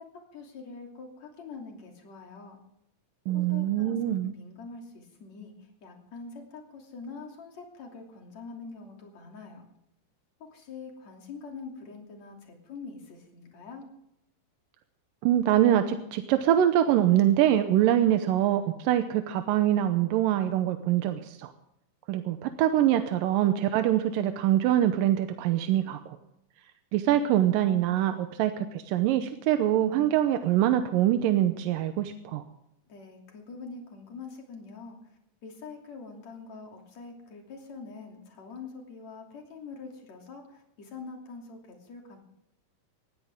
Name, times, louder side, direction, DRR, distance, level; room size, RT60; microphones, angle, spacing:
voice 1, 0.1-2.6 3.3-9.6 10.4-13.8 32.9-35.1 35.4-42.2, left 4 dB, 55° left, 1 dB, 4.1 m, -44 dB
voice 2, 3.3-4.3 15.2-21.5 22.1-26.2 26.9-32.4, right 12 dB, 90° right, 8 dB, 2.5 m, -24 dB
20.0 x 15.0 x 3.7 m, 0.81 s
omnidirectional pair, 3.9 m